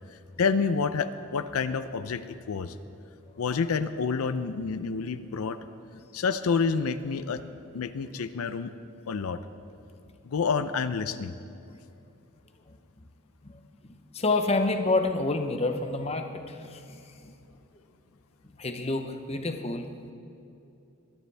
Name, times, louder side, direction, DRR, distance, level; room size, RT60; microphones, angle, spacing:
voice 1, 0.1-2.2 2.5-2.7 3.4-5.6 6.1-7.4 7.7-8.7 9.1-9.4 10.2-11.3, left 5 dB, 85° left, 12 dB, 0.5 m, -28 dB
voice 2, 13.4-17.3 18.6-19.9, left 2 dB, 30° left, 6 dB, 0.7 m, -29 dB
22.0 x 9.5 x 3.4 m, 2.7 s
head